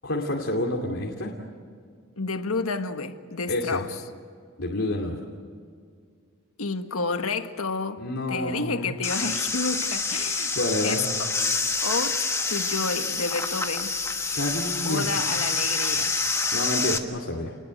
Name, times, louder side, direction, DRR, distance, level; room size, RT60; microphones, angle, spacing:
voice 1, 0.0-1.3 3.5-3.8 4.6-5.2 8.0-9.0 10.5-11.1 14.3-15.1 16.5-17.6, left 1 dB, 65° left, 2.7 m, -28 dB
voice 2, 2.2-3.9 6.6-8.0 8.3-10.5 10.8-11.3 11.8-13.9 14.8-16.2, left 4 dB, 85° left, 1.6 m, -30 dB
sound 1, 9.0-17.0, left 4 dB, 15° left, 1.4 m, -27 dB
29.5 x 21.0 x 7.8 m
head